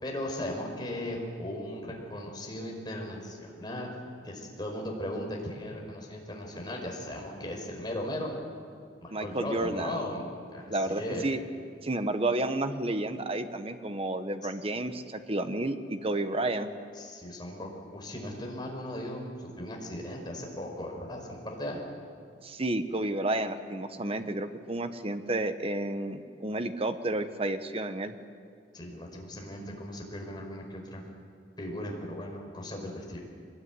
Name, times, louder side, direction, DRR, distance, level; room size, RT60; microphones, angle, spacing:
voice 1, 0.0-3.9 4.2-8.3 9.0-10.2 10.5-11.3 14.4-14.5 17.0-21.9 28.7-31.0 31.6-33.2, left 1 dB, 25° left, 0 dB, 5.2 m, -37 dB
voice 2, 9.1-10.1 10.7-11.4 11.8-16.7 22.4-28.1, right 2 dB, 30° right, 8 dB, 1.3 m, -31 dB
24.0 x 21.0 x 9.7 m, 2.3 s
head